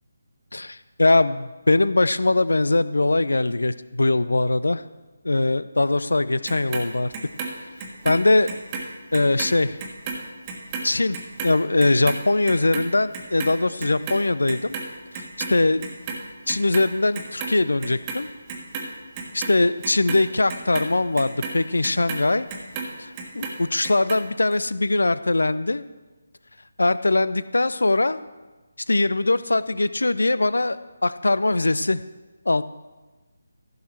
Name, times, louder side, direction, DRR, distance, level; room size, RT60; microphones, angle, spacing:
voice 1, 0.5-4.8 5.2-7.1 8.0-8.5 9.1-9.8 10.8-11.2 11.4-14.8 15.1-15.8 16.5-18.3 19.3-22.5 23.0-25.8 26.8-28.2 28.9-32.0 32.5-32.6, left 2 dB, 70° left, 16 dB, 0.4 m, -21 dB
Clock, 6.5-8.9 9.1-15.5 15.8-16.9 17.1-18.2 18.5-22.9 23.2-24.2 24.5-24.6, right 4 dB, 20° right, 1.5 m, -33 dB
15.0 x 6.3 x 4.4 m, 1.2 s
figure-of-eight pair, 150°, 0 cm